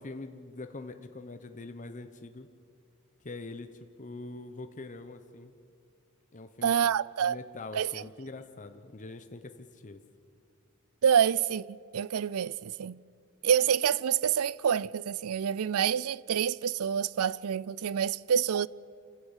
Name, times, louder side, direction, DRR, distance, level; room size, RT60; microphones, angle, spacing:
voice 1, 0.0-2.5 3.2-3.7 4.0-5.5 6.3-6.7 7.2-10.0, left 2 dB, 35° left, 1.0 m, -43 dB
voice 2, 6.6-7.4 7.7-8.0 11.0-13.0 13.4-18.7, right 8 dB, 80° right, 0.5 m, -27 dB
27.0 x 16.0 x 8.2 m
head